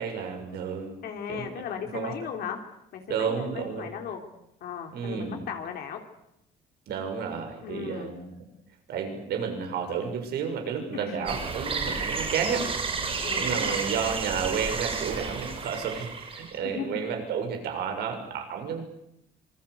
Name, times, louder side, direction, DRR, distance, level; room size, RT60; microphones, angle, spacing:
voice 1, 0.0-1.0 1.3-1.5 1.9-2.1 3.1-3.9 4.9-5.4 6.9-8.3 8.9-12.7 13.3-18.8, right 6 dB, 75° right, 5 dB, 6.8 m, -31 dB
voice 2, 1.0-2.6 2.9-4.2 4.6-6.0 7.6-8.1 10.9-11.8 13.2-13.8 16.6-17.1, left 7 dB, 65° left, 4 dB, 3.3 m, -37 dB
sound 1, 11.3-16.6, right 4 dB, 35° right, 6.7 m, -31 dB
26.0 x 21.0 x 8.5 m, 0.82 s
cardioid pair, 110°, 17 cm